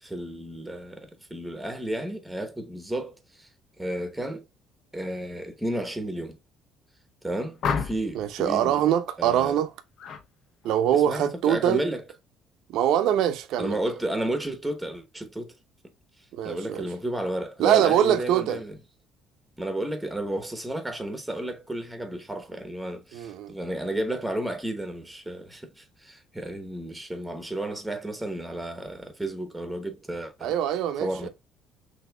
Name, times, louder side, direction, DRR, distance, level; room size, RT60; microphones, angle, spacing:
voice 1, 0.0-3.5 3.8-4.4 4.9-6.4 7.2-8.8 9.2-9.6 10.9-12.0 13.6-15.5 16.4-18.8 19.6-30.6 31.0-31.3, right 1 dB, 5° right, 0.9 m, -32 dB
sound 1, 7.6-8.2 10.0-10.3 10.6-11.0, left 6 dB, 50° left, 0.7 m, -30 dB
voice 2, 8.1-9.7 10.6-11.9 12.7-13.8 16.3-16.9 17.6-18.6 23.1-23.5 30.4-31.3, right 10 dB, 70° right, 0.6 m, -23 dB
6.0 x 2.7 x 2.2 m
cardioid pair, 140°, 0 cm